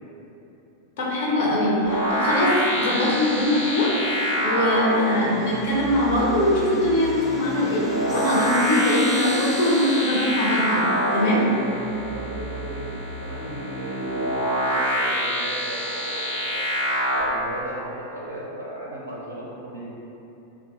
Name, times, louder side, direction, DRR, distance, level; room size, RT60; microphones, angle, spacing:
voice 1, 1.0-3.9 4.4-11.5, left 1 dB, 55° left, -4 dB, 0.6 m, -22 dB
sound 1, 1.9-17.2, equal, 75° left, 1.0 m, -26 dB
sound 2, 5.0-10.9, right 1 dB, 10° left, 0.3 m, -42 dB
voice 2, 11.6-16.7 17.1-19.9, right 1 dB, 80° right, -6 dB, 0.4 m, -36 dB
2.7 x 2.1 x 2.9 m, 2.9 s
figure-of-eight pair, 90°, 0 cm